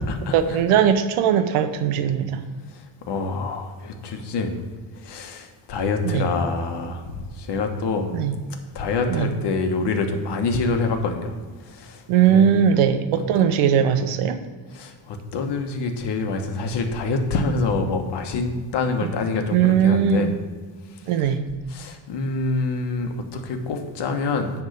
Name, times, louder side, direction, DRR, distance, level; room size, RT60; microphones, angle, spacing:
voice 1, 0.3-2.4 6.0-6.3 8.1-8.3 9.1-9.3 12.1-14.4 19.0-19.1 19.5-20.3 21.1-21.4, right 8 dB, 90° right, 9 dB, 0.8 m, -19 dB
voice 2, 2.7-4.5 4.9-8.1 8.7-11.4 11.6-12.0 12.3-12.5 13.1-13.2 14.7-20.3 21.2-21.3 21.7-24.5, left 3 dB, 55° left, 5 dB, 1.3 m, -26 dB
9.9 x 3.6 x 6.6 m, 1.5 s
cardioid pair, 105°, 49 cm